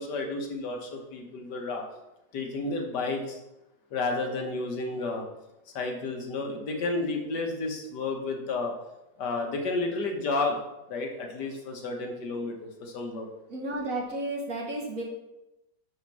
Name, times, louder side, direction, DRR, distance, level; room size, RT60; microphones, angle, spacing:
voice 1, 0.0-1.8 2.3-3.4 3.9-5.2 5.7-8.7 9.2-10.6 10.9-13.3, left 3 dB, 70° left, 2 dB, 1.6 m, -31 dB
voice 2, 13.5-15.0, right 2 dB, 55° right, 0 dB, 1.5 m, -32 dB
5.2 x 5.0 x 6.0 m, 0.93 s
omnidirectional pair, 1.9 m